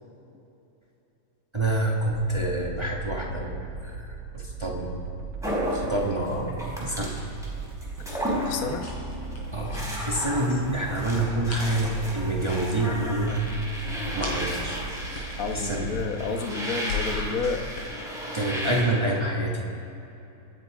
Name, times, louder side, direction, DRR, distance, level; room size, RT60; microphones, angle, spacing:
voice 1, 1.5-4.9 5.7-7.2 9.5-13.5 14.1-14.9 15.5-15.9 18.3-19.6, right 1 dB, 20° right, -1 dB, 0.7 m, -27 dB
sound 1, 2.1-16.0, right 4 dB, 60° right, 1.2 m, -38 dB
sound 2, 5.4-7.5 7.8-9.0 9.3-18.8, equal, ahead, 3.8 m, -34 dB
voice 2, 8.1-8.8 15.4-17.7, left 4 dB, 80° left, 5 dB, 0.7 m, -30 dB
sound 3, 8.5-17.8, left 4 dB, 60° left, 4.8 m, -40 dB
25.0 x 10.0 x 4.9 m, 2.9 s
omnidirectional pair, 3.3 m